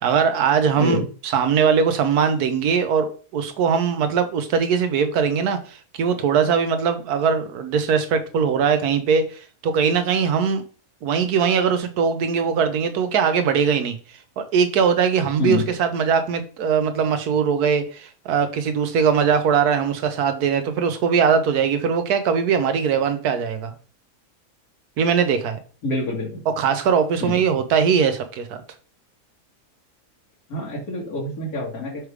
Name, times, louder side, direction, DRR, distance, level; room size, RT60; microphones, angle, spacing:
voice 1, 0.0-10.6 11.0-13.9 14.4-23.7 25.0-25.6 26.5-28.6, right 6 dB, 90° right, 1.4 m, -21 dB
voice 2, 25.8-26.4 27.2-27.4 30.5-32.1, left 2 dB, 75° left, 2.2 m, -26 dB
6.2 x 3.3 x 4.8 m
omnidirectional pair, 1.6 m